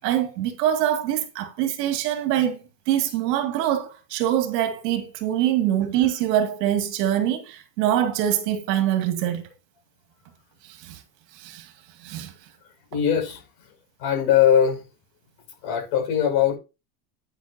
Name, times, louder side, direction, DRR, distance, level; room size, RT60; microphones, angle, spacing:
voice 1, 0.0-2.6 2.9-9.4 10.7-11.0 11.4-11.7 12.0-12.3, right 11 dB, 75° right, 2.5 m, -24 dB
voice 2, 12.9-13.4 14.0-14.8 15.6-16.6, left 9 dB, 65° left, 6.0 m, -20 dB
10.0 x 8.3 x 2.9 m
supercardioid pair, 160°, 48 cm